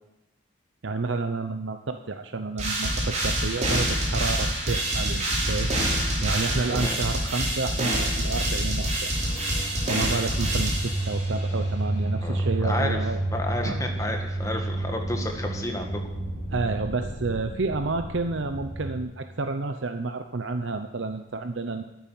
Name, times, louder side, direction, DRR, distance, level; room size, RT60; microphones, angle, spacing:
voice 1, 0.8-5.7 6.2-9.1 9.9-13.2 13.6-13.8 16.5-21.8, right 3 dB, 75° right, 8 dB, 0.8 m, -30 dB
sound 1, 2.6-11.4, right 1 dB, 35° right, 4.3 m, -26 dB
sound 2, 9.1-19.0, right 2 dB, 80° left, 5.7 m, -31 dB
voice 2, 12.2-13.0 13.3-16.0, left 1 dB, 15° left, 3 dB, 1.9 m, -31 dB
13.0 x 9.1 x 9.2 m, 0.94 s
head